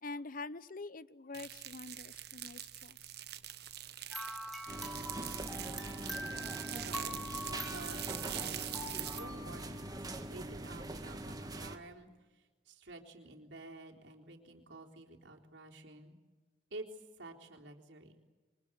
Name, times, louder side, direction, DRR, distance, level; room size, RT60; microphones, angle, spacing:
voice 1, 0.0-3.0, left 3 dB, 50° left, 17 dB, 0.8 m, -45 dB
sound 1, 1.3-9.2, right 13 dB, 65° right, 1.3 m, -44 dB
sound 2, 4.1-10.6, equal, ahead, 2.8 m, -45 dB
sound 3, 4.7-11.8, right 1 dB, 20° right, 1.8 m, -43 dB
voice 2, 6.7-7.2 7.4-12.1 12.3-16.2 16.7-18.2, right 2 dB, 90° right, 1 dB, 3.8 m, -51 dB
27.5 x 23.5 x 8.2 m, 1.3 s
head